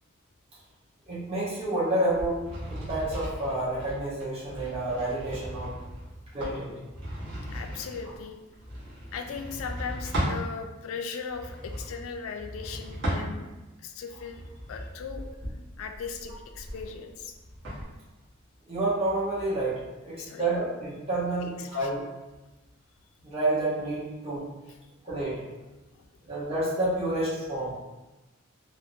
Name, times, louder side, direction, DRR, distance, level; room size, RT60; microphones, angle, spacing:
voice 1, 1.1-2.4 2.7-5.7 6.3-6.7 18.7-22.0 23.2-24.4 25.0-25.4 26.3-27.7, right 2 dB, 30° right, -9 dB, 0.9 m, -29 dB
sound 1, 2.1-10.5 11.3-13.7 14.2-17.8, equal, 60° right, 1.0 m, -37 dB
voice 2, 7.5-8.4 9.1-13.5 13.8-14.4 14.7-15.3 15.8-17.3 20.1-20.5 21.4-21.9 25.9-26.0, left 6 dB, 80° left, 7 dB, 0.3 m, -38 dB
2.7 x 2.0 x 2.5 m, 1.1 s
head